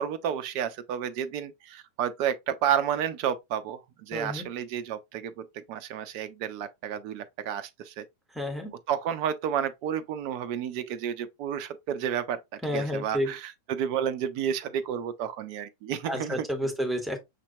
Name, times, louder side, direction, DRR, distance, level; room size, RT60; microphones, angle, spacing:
voice 1, 0.0-8.0 8.9-16.5, right 9 dB, 45° right, 0.6 m, -31 dB
voice 2, 4.1-4.5 8.3-8.7 12.6-13.3 16.1-17.2, equal, 5° right, 1.4 m, -30 dB
6.6 x 2.9 x 2.7 m
figure-of-eight pair, 90°, 0 cm